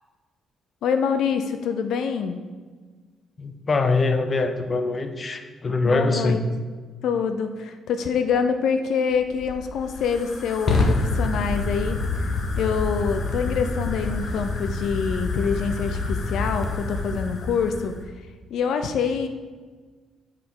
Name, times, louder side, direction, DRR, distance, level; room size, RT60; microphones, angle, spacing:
voice 1, 0.8-2.4 5.8-6.4 7.0-12.3 12.6-18.1 18.5-19.3, left 6 dB, 75° left, 8 dB, 0.6 m, -25 dB
voice 2, 3.4-6.4, left 3 dB, 35° left, 7 dB, 0.8 m, -23 dB
Fire, 9.1-18.1, left 3 dB, 55° left, 1.4 m, -27 dB
7.4 x 5.0 x 6.1 m, 1.4 s
cardioid pair, 90°, 0 cm